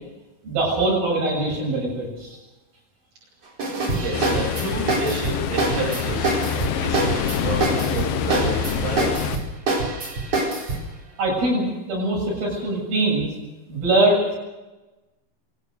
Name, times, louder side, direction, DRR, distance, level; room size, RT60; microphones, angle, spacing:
voice 1, 0.4-2.4 11.2-13.3 13.7-14.4, right 2 dB, 70° right, -3 dB, 9.2 m, -22 dB
sound 1, 3.6-10.9, right 2 dB, 40° right, 5.3 m, -25 dB
voice 2, 4.0-9.3, right 2 dB, 55° right, -3 dB, 9.0 m, -30 dB
Ocean, 4.1-9.4, left 7 dB, 70° left, 2.9 m, -26 dB
25.5 x 19.0 x 6.6 m, 1.1 s
omnidirectional pair, 4.4 m